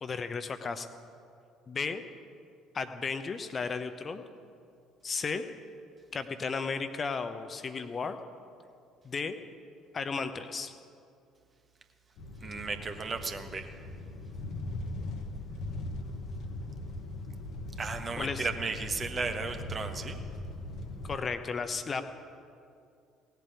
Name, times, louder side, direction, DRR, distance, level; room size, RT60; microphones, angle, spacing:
voice 1, 0.0-0.9 1.7-2.0 2.7-4.2 5.0-5.4 6.1-8.2 9.0-9.3 9.9-10.7 18.2-18.5 21.0-22.0, left 5 dB, 35° left, 9 dB, 0.9 m, -34 dB
sound 1, 12.2-21.2, left 2 dB, 55° left, 1.1 m, -40 dB
voice 2, 12.4-13.7 17.8-20.2, right 4 dB, 30° right, 6 dB, 1.4 m, -35 dB
17.5 x 8.2 x 8.5 m, 2.4 s
figure-of-eight pair, 50°, 0 cm